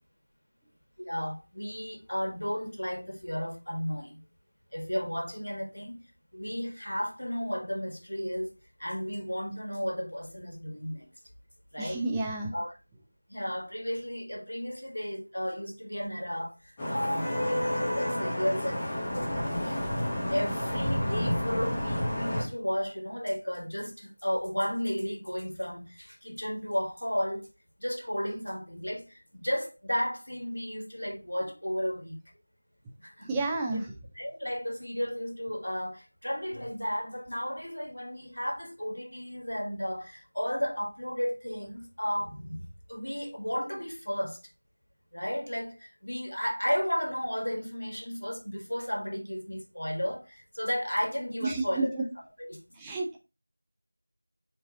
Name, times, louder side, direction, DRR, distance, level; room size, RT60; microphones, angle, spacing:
voice 1, 1.0-4.2 4.7-6.0 6.3-8.5 8.8-11.1 11.7-12.0 12.5-12.7 13.3-27.5 27.8-32.2 33.0-33.3 33.7-33.8 34.2-44.4 45.1-51.9 52.4-52.6, equal, 85° left, 1.5 m, -33 dB
voice 2, 11.8-12.5 33.3-33.9 51.4-52.0 52.8-53.2, right 2 dB, 5° right, 0.4 m, -30 dB
Vehicle horn car horn honking / Traffic noise roadway noise, 16.8-22.4, equal, 15° left, 1.0 m, -30 dB
4.4 x 3.2 x 3.7 m
figure-of-eight pair, 175°, 0 cm